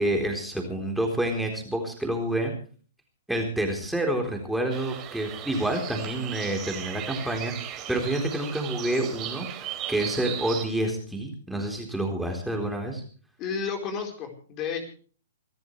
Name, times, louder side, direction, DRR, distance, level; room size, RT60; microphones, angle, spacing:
voice 1, 0.0-2.5 3.3-7.5 7.9-13.0, right 1 dB, ahead, 2 dB, 3.9 m, -28 dB
sound 1, 4.7-10.6, right 10 dB, 25° right, 3.4 m, -37 dB
voice 2, 13.4-14.9, left 6 dB, 30° left, 4 dB, 4.4 m, -32 dB
27.5 x 13.5 x 3.3 m, 0.41 s
figure-of-eight pair, 115°, 0 cm